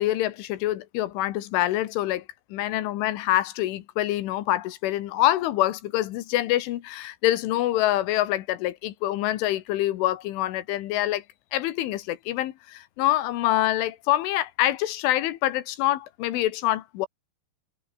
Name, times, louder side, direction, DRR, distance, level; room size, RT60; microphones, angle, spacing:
voice 1, 0.0-2.2 2.5-11.2 11.5-17.1, left 14 dB, 80° left, 3.8 m, -25 dB
omnidirectional pair, 5.6 m